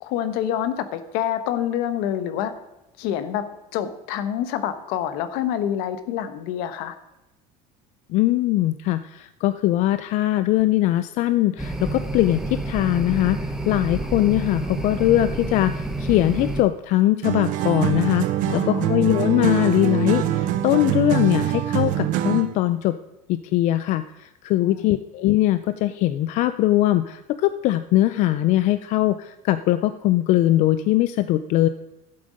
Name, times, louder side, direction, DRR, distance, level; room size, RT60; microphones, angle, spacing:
voice 1, 0.0-2.5 3.0-3.5 3.7-7.0 18.5-19.2 24.6-24.9, left 10 dB, 70° left, 12 dB, 1.1 m, -27 dB
voice 2, 8.1-18.3 18.5-23.0 23.3-31.7, left 15 dB, 50° left, 12 dB, 0.4 m, -21 dB
sound 1, 11.6-16.6, right 2 dB, 5° right, 0.8 m, -29 dB
sound 2, 17.2-22.6, right 11 dB, 55° right, 0.8 m, -24 dB
12.5 x 7.7 x 5.1 m, 0.97 s
cardioid pair, 165°, 16 cm